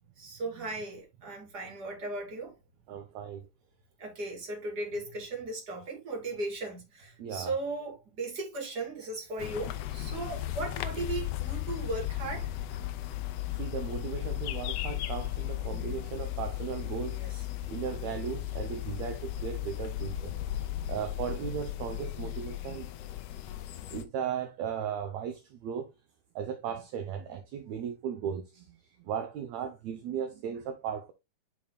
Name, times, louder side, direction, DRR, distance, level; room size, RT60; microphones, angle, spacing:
voice 1, 0.2-2.5 4.0-12.5 17.1-17.4, right 2 dB, 30° right, 2.9 m, -37 dB
voice 2, 2.9-3.5 7.2-7.5 13.6-17.2 17.7-20.3 20.9-22.9 23.9-25.9 26.4-28.7 29.1-31.1, right 8 dB, 70° right, 1.9 m, -36 dB
sound 1, 9.4-24.0, left 14 dB, 75° left, 1.6 m, -36 dB
10.5 x 4.9 x 2.3 m
omnidirectional pair, 3.6 m